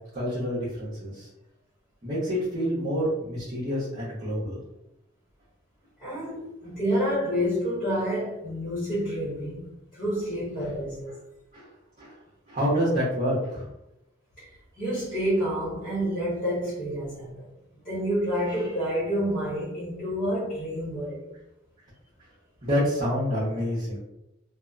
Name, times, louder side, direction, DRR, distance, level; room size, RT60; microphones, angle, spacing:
voice 1, 0.1-1.3 2.0-4.6 11.5-11.7 12.0-12.2 12.5-13.7 22.6-24.0, equal, 40° right, 0.9 m, -27 dB
voice 2, 6.0-11.1 14.4-14.5 14.8-17.5 17.8-21.2, equal, 25° left, 1.0 m, -28 dB
2.8 x 2.0 x 2.4 m
head